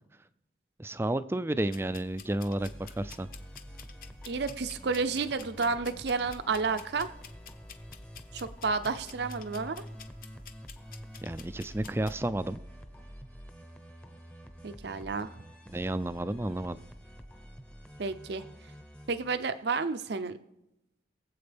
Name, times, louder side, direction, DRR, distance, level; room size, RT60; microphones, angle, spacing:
voice 1, 0.8-3.3 11.2-12.6 15.7-16.8, right 1 dB, 15° right, 14 dB, 0.3 m, -31 dB
sound 1, 1.7-12.2, left 5 dB, 50° left, 0.9 m, -51 dB
sound 2, 2.6-20.0, equal, 5° left, 0.8 m, -48 dB
voice 2, 4.3-7.1 8.3-9.8 14.6-15.3 18.0-18.4 19.1-20.4, right 4 dB, 65° right, 10 dB, 0.6 m, -31 dB
23.0 x 7.9 x 3.4 m, 0.92 s
head